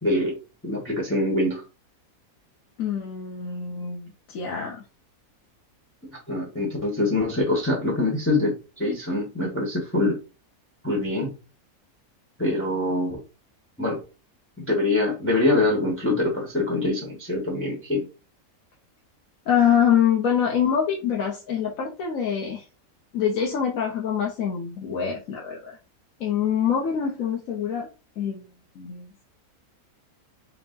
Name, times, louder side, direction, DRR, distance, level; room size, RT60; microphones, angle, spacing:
voice 1, 0.0-0.3 0.6-1.6 6.1-10.2 10.8-11.3 12.4-13.2 13.8-14.0 14.6-18.0, left 2 dB, 10° left, -2 dB, 1.1 m, -24 dB
voice 2, 2.8-4.8 19.5-22.6 23.1-25.8 26.2-27.9 28.2-28.4 28.7-29.2, left 8 dB, 70° left, -1 dB, 1.2 m, -25 dB
4.7 x 2.2 x 3.8 m, 0.32 s
omnidirectional pair, 1.6 m